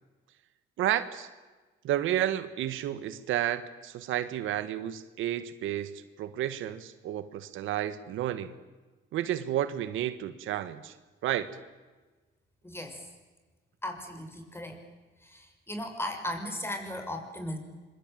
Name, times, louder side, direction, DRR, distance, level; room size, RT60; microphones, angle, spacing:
voice 1, 0.8-1.3 1.8-8.5 9.1-10.9 11.2-11.5, right 12 dB, 85° right, 13 dB, 1.5 m, -31 dB
voice 2, 12.6-13.1 13.8-14.8 15.2-17.6, left 1 dB, 10° left, 4 dB, 6.2 m, -37 dB
25.5 x 23.5 x 9.2 m, 1.3 s
cardioid pair, 90°, 20 cm